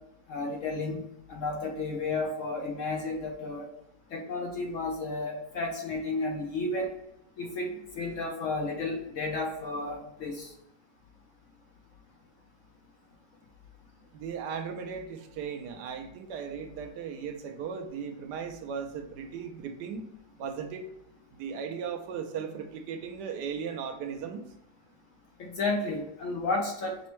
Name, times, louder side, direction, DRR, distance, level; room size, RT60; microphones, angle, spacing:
voice 1, 0.3-1.0 1.3-3.7 4.1-6.9 7.4-10.5 25.4-27.1, left 3 dB, 65° left, 0 dB, 0.8 m, -32 dB
voice 2, 14.1-20.1 20.4-20.9 21.4-24.5, right 6 dB, 80° right, 6 dB, 1.2 m, -37 dB
6.1 x 2.1 x 3.0 m, 0.82 s
omnidirectional pair, 1.8 m